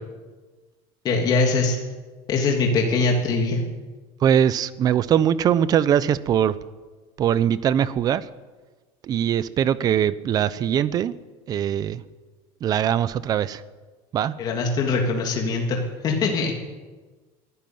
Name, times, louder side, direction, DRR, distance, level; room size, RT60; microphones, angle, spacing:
voice 1, 1.0-1.8 2.3-3.6 14.4-16.5, left 3 dB, 35° left, 0 dB, 3.1 m, -22 dB
voice 2, 4.2-6.6 7.2-8.2 9.0-11.1 11.5-12.0 12.6-13.6 14.1-14.3, right 9 dB, 30° right, 16 dB, 0.8 m, -21 dB
22.5 x 13.0 x 9.4 m, 1.3 s
cardioid pair, 160°, 12 cm